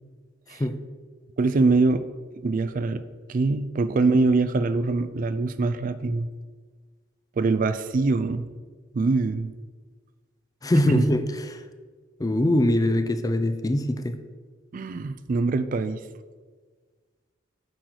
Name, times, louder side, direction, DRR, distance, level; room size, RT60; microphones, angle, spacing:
voice 1, 1.4-2.1 2.4-3.0 3.3-6.3 7.4-8.5 8.9-9.5 10.9-11.1 14.7-16.0, right 3 dB, 45° right, 12 dB, 0.3 m, -23 dB
voice 2, 10.6-11.6 12.2-14.2, left 1 dB, 20° left, 9 dB, 0.4 m, -22 dB
7.7 x 4.5 x 6.5 m, 1.5 s
head